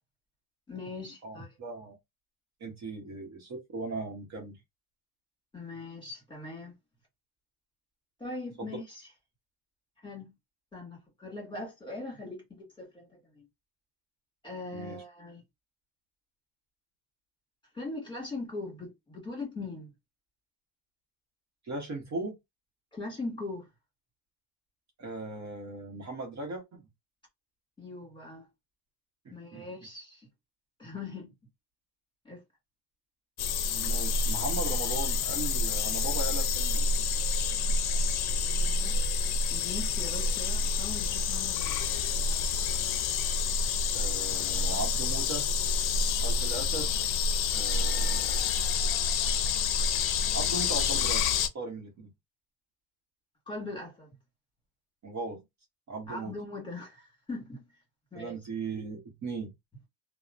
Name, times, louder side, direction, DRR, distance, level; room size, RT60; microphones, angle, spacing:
voice 1, 0.7-1.5 5.5-6.8 8.2-9.1 10.0-10.3 10.7-13.4 14.4-15.4 17.7-19.9 22.9-23.7 27.8-28.5 29.3-30.3 30.8-31.3 32.2-32.4 38.2-39.0 39.5-42.5 53.5-54.1 56.1-57.6 58.1-58.4, left 2 dB, 10° left, 1.6 m, -41 dB
voice 2, 1.2-2.0 2.6-4.6 8.6-8.7 14.7-15.0 21.6-22.4 25.0-26.8 29.2-29.6 33.7-36.9 43.9-45.5 46.2-47.0 47.5-48.6 50.3-52.1 55.0-55.4 55.9-56.3 58.1-59.5, right 2 dB, 40° right, 1.0 m, -38 dB
sound 1, 33.4-51.5, left 4 dB, 60° left, 0.5 m, -28 dB
2.8 x 2.1 x 2.5 m
cardioid pair, 120°, 42 cm